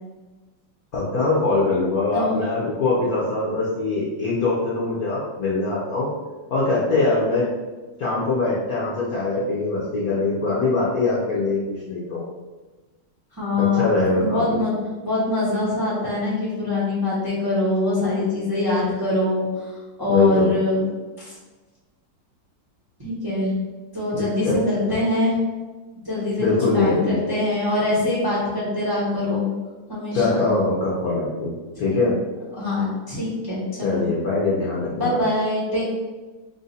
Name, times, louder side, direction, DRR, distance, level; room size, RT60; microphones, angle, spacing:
voice 1, 0.9-6.1 6.5-7.5 8.0-12.2 13.6-14.6 20.1-20.5 24.1-24.6 26.4-27.2 30.1-31.5 31.8-32.2 33.8-35.2, left 3 dB, 65° left, -6 dB, 0.9 m, -22 dB
voice 2, 13.4-13.8 14.1-14.7 15.0-19.7 20.0-20.8 23.0-23.5 23.9-25.4 26.0-26.5 26.7-29.5 29.9-30.4 31.7-32.1 32.5-34.0 34.9-35.9, left 2 dB, 15° right, -8 dB, 0.9 m, -23 dB
3.8 x 2.6 x 4.0 m, 1.2 s
omnidirectional pair, 2.3 m